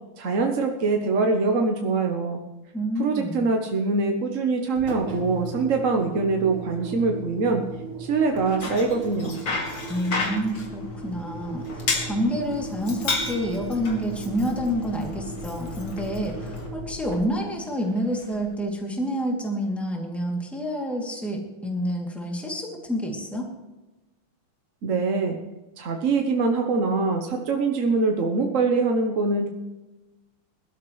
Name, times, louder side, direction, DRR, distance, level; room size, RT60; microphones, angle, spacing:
voice 1, 0.2-2.4 3.0-7.6 8.0-9.4 24.8-25.4 25.8-29.5, right 4 dB, 45° right, 3 dB, 1.2 m, -23 dB
voice 2, 2.7-3.4 9.9-23.5, equal, ahead, -1 dB, 2.5 m, -28 dB
Engine, 4.7-18.7, right 2 dB, 80° right, 2.7 m, -37 dB
Bicycle, 8.3-16.7, left 3 dB, 60° left, 2.9 m, -33 dB
21.0 x 13.0 x 3.2 m, 1.1 s
omnidirectional pair, 2.3 m